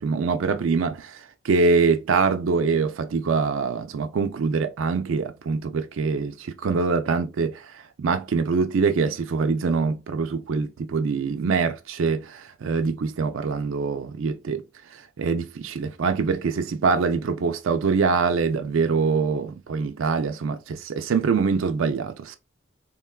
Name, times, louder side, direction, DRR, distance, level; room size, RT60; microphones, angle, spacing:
voice 1, 0.0-7.7 8.0-14.6 15.2-22.4, right 4 dB, 70° right, 0.4 m, -24 dB
3.6 x 2.2 x 2.2 m
head